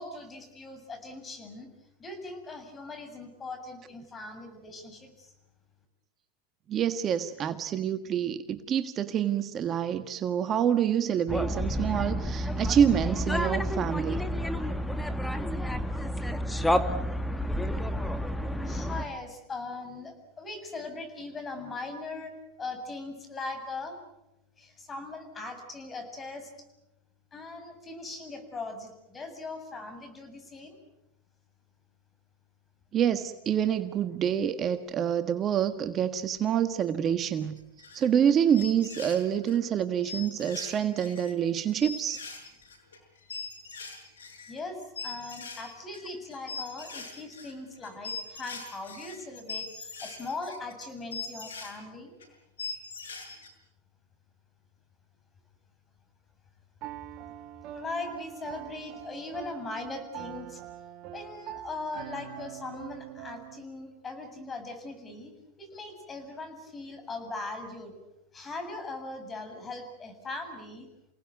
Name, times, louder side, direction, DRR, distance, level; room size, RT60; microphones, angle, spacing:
voice 1, 0.0-1.7 2.0-5.3 18.6-24.0 24.6-26.5 27.3-30.8 44.5-52.1 57.7-60.6 61.1-65.3 65.6-67.9 68.3-70.9, left 3 dB, 20° left, 8 dB, 7.3 m, -40 dB
voice 2, 6.7-14.2 32.9-37.6 37.9-42.2, right 9 dB, 35° right, 10 dB, 1.5 m, -27 dB
sound 1, 11.3-19.0, equal, 5° left, 2.0 m, -30 dB
sound 2, 37.6-38.2 38.5-39.6 40.0-51.7 52.2-52.3 52.6-53.5, left 4 dB, 90° left, 6.6 m, -41 dB
Piano, 56.8-63.6, right 13 dB, 50° right, 2.0 m, -43 dB
29.0 x 18.5 x 9.3 m, 0.91 s
hypercardioid pair, 105°, 0 cm